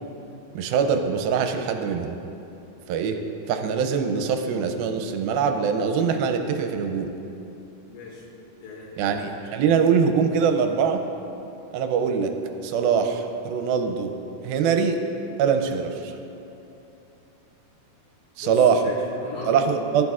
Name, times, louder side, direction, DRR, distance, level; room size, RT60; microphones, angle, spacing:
voice 1, 0.6-2.2 2.9-3.2 3.5-7.1 9.0-11.0 11.7-12.3 12.6-14.1 14.4-15.0 15.4-16.2 18.4-18.8 19.5-20.0, right 6 dB, 80° right, 6 dB, 2.4 m, -23 dB
voice 2, 7.8-8.3 8.6-9.2 18.4-19.7, left 3 dB, 85° left, -3 dB, 3.9 m, -38 dB
15.0 x 11.5 x 2.4 m, 2.8 s
omnidirectional pair, 4.3 m